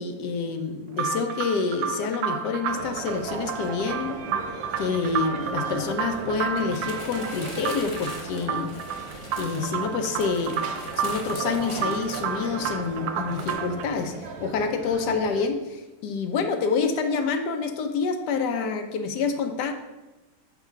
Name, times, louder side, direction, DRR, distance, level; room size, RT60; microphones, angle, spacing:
voice 1, 0.0-4.1 4.8-8.7 9.4-10.7 11.0-19.7, left 5 dB, 75° left, 7 dB, 1.1 m, -27 dB
sound 1, 0.9-13.9, right 8 dB, 90° right, 1.3 m, -31 dB
sound 2, 2.7-15.5, right 3 dB, 65° right, 1.1 m, -38 dB
sound 3, 5.7-12.9 13.3-13.5, left 1 dB, 30° left, 0.5 m, -42 dB
4.8 x 3.8 x 5.6 m, 1.1 s
omnidirectional pair, 2.0 m